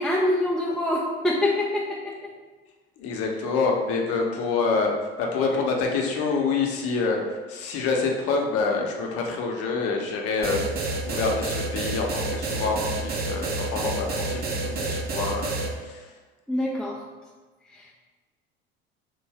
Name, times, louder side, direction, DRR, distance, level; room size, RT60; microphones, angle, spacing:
voice 1, 0.0-2.3 16.5-17.0 17.7-17.9, left 1 dB, ahead, -5 dB, 0.3 m, -25 dB
voice 2, 3.0-4.9 5.2-10.7 11.0-15.5 15.8-16.1, left 4 dB, 50° left, 0 dB, 0.8 m, -26 dB
sound 1, 10.4-15.7, right 2 dB, 30° right, 0.7 m, -29 dB
3.9 x 2.6 x 3.3 m, 1.3 s
figure-of-eight pair, 65°, 32 cm